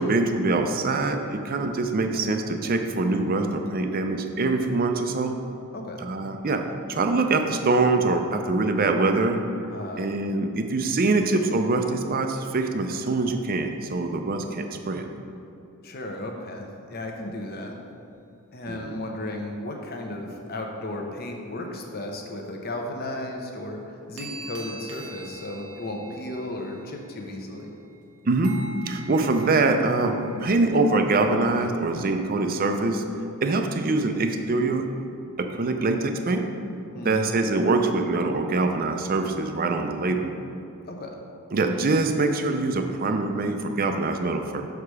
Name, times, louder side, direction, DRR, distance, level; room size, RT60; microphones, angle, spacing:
voice 1, 0.0-5.3 6.0-6.6 6.9-9.4 10.0-15.1 18.7-18.9 28.3-28.6 28.9-33.0 33.4-34.9 35.4-36.4 37.0-40.3 41.5-44.6, right 3 dB, 40° right, 5 dB, 0.5 m, -24 dB
voice 2, 5.7-6.1 9.7-10.1 15.8-17.8 18.5-27.7 36.9-37.2 40.9-41.2, left 1 dB, 45° left, 2 dB, 0.8 m, -34 dB
sound 1, 23.7-23.8 24.2-28.0 28.4-30.8, right 2 dB, 85° right, 1.0 m, -43 dB
6.6 x 4.8 x 4.8 m, 2.8 s
head